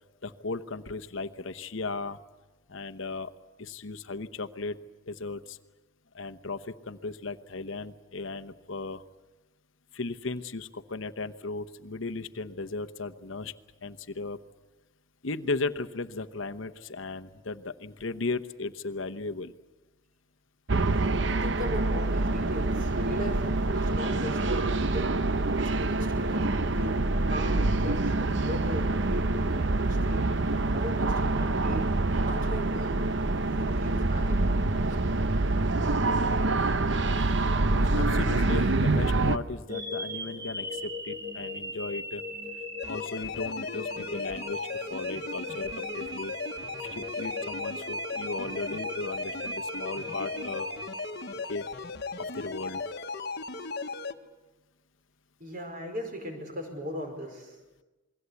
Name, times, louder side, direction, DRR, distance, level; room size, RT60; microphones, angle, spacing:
voice 1, 0.2-2.2 2.7-3.3 3.6-4.8 5.1-5.6 6.1-9.0 9.9-13.5 13.8-14.4 15.2-19.5 37.7-42.2 42.9-46.3 46.8-50.7 51.4-51.7 52.2-52.8, left 3 dB, 70° left, 8 dB, 1.0 m, -36 dB
sound 1, 20.7-39.4, right 2 dB, 60° right, 0.9 m, -26 dB
voice 2, 21.1-25.1 25.6-27.0 27.3-30.3 30.7-33.1 33.6-34.6 55.4-57.6, equal, 45° right, 4 dB, 5.2 m, -38 dB
sound 2, 39.7-51.8, left 1 dB, 15° right, 1.7 m, -38 dB
sound 3, 42.8-54.1, left 3 dB, 50° left, 1.3 m, -37 dB
28.0 x 21.5 x 8.3 m, 1.1 s
head